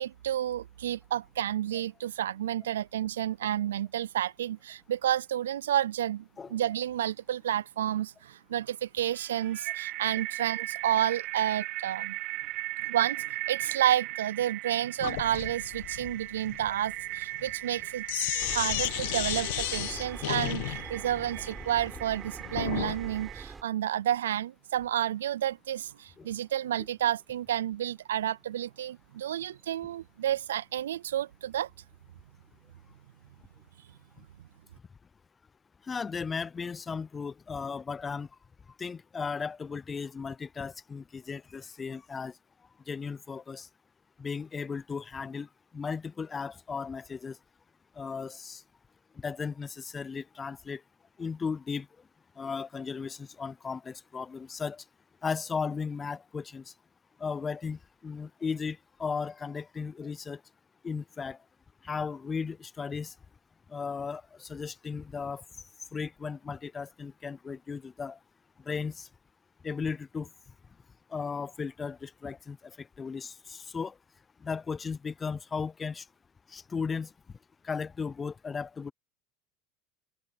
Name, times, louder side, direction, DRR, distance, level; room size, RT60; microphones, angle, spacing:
voice 1, 0.0-12.2 12.8-18.0 18.5-31.7, right 11 dB, 90° right, 0.4 m, -30 dB
sound 1, 9.1-23.4, right 20 dB, 60° right, 1.1 m, -38 dB
Sink (filling or washing), 15.0-23.0, left 20 dB, 75° left, 1.4 m, -34 dB
sound 2, 18.4-23.6, right 4 dB, 20° right, 4.3 m, -44 dB
voice 2, 35.8-38.3 38.8-42.3 42.9-43.7 44.2-47.4 48.0-48.6 49.2-50.8 51.2-51.9 52.4-54.8 55.2-56.7 57.2-60.4 60.8-61.4 61.8-63.1 63.7-65.4 65.9-68.2 68.6-69.1 69.6-70.3 71.1-73.9 74.4-76.1 76.5-77.1 77.6-78.9, left 5 dB, 25° left, 0.5 m, -36 dB
open air
hypercardioid pair, 85°, 0 cm